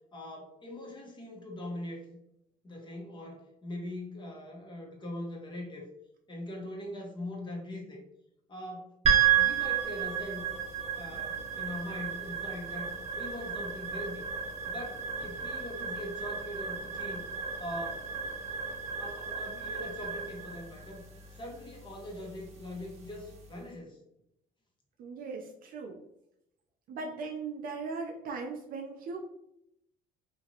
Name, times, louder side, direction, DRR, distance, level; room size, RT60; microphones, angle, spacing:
voice 1, 0.1-2.2 2.6-5.9 6.3-8.0 8.5-8.9 9.3-10.4 11.0-14.3 14.7-17.2 17.6-18.1 19.0-21.0 21.3-24.0, left 1 dB, 25° left, -1 dB, 1.0 m, -41 dB
sound 1, 9.0-23.4, right 8 dB, 40° right, 0.8 m, -33 dB
voice 2, 25.0-26.0 26.9-29.2, right 4 dB, 60° right, 1 dB, 0.5 m, -38 dB
2.9 x 2.5 x 2.8 m, 0.80 s
cardioid pair, 110°, 17 cm